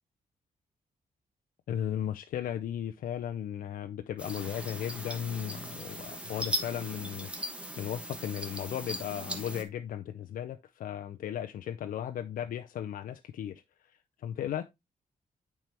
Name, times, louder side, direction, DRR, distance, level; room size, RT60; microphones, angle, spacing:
voice 1, 1.7-13.9 14.2-14.6, left 10 dB, 80° left, 0.5 m, -36 dB
sound 1, 4.2-9.6, equal, 10° right, 1.1 m, -38 dB
9.1 x 4.4 x 3.4 m
wide cardioid pair, 150°, 14 cm